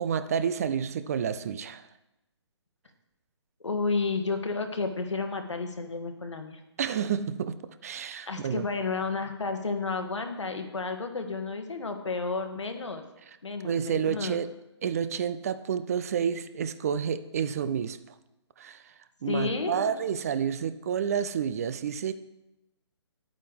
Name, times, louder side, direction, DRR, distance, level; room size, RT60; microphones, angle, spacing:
voice 1, 0.0-1.9 6.8-8.6 13.6-14.5 14.8-18.0 18.6-18.9 19.2-22.1, right 8 dB, 30° right, 12 dB, 0.4 m, -30 dB
voice 2, 3.6-6.6 8.3-13.0 13.4-14.4 19.3-20.0, left 4 dB, 75° left, 5 dB, 1.5 m, -31 dB
10.0 x 8.6 x 3.5 m, 0.91 s
figure-of-eight pair, 140°, 15 cm